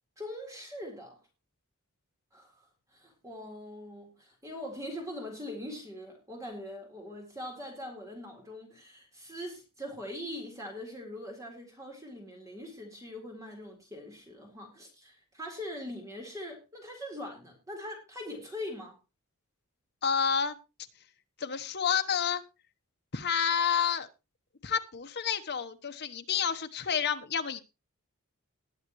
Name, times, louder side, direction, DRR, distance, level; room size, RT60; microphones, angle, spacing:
voice 1, 0.2-1.2 2.3-19.0, left 1 dB, 15° right, 1 dB, 4.0 m, -42 dB
voice 2, 20.0-20.6 21.4-22.4 23.1-24.1 24.6-27.6, left 7 dB, 50° left, 7 dB, 1.1 m, -29 dB
20.0 x 8.1 x 3.1 m, 0.28 s
head